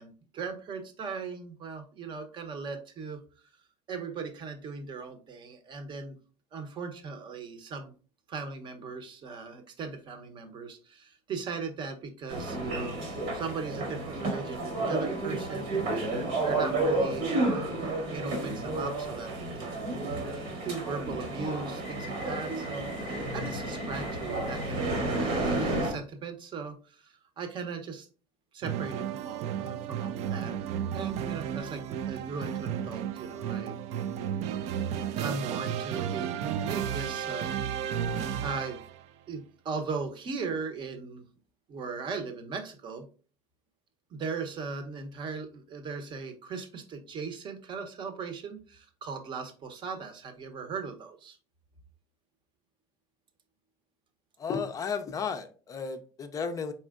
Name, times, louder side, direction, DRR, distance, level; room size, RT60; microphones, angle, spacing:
voice 1, 0.0-3.2 3.9-6.2 6.5-7.9 8.3-13.0 13.3-20.0 20.6-24.9 25.2-28.1 28.5-30.6 30.9-33.8 34.7-37.5 38.4-38.8 39.3-41.2 41.7-43.1 44.1-51.4, right 4 dB, 35° right, 0.8 m, -38 dB
sound 1, 12.3-25.9, right 2 dB, 85° right, 1.8 m, -31 dB
sound 2, 28.6-39.0, right 9 dB, 55° right, 0.4 m, -33 dB
voice 2, 54.4-56.7, left 5 dB, 25° left, 0.4 m, -33 dB
4.3 x 4.2 x 2.4 m
cardioid pair, 150°, 14 cm